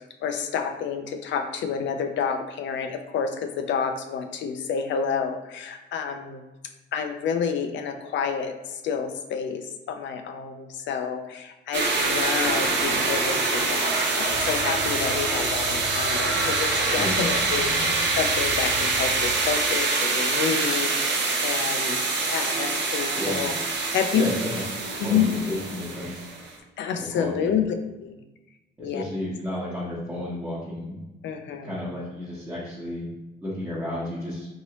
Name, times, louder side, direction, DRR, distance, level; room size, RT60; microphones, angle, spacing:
voice 1, 0.0-6.4 6.9-17.9 18.1-23.5 23.9-24.3 25.0-25.3 26.8-27.7 28.0-28.2 28.8-29.0 31.2-31.7, left 7 dB, 70° left, 7 dB, 0.4 m, -29 dB
sound 1, 11.7-26.5, right 3 dB, 65° right, 0.7 m, -25 dB
sound 2, 14.3-19.9, left 2 dB, 35° left, 0.8 m, -40 dB
voice 2, 16.9-17.9 23.1-23.5 24.1-24.6 25.0-26.3 26.9-27.5 28.8-31.0 31.5-33.1 33.4-34.5, left 1 dB, 15° right, -10 dB, 1.1 m, -32 dB
3.1 x 2.7 x 3.0 m, 1.0 s
cardioid pair, 90°, 20 cm